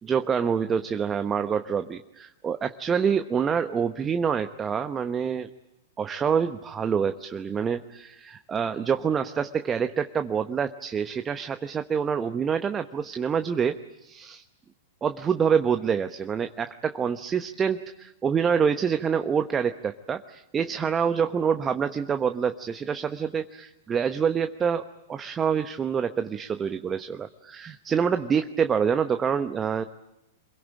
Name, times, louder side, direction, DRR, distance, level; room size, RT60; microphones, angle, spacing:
voice 1, 0.0-5.5 6.0-14.4 15.0-29.8, right 7 dB, 20° right, 8 dB, 1.0 m, -26 dB
26.5 x 22.5 x 8.9 m, 0.86 s
figure-of-eight pair, 105°, 0 cm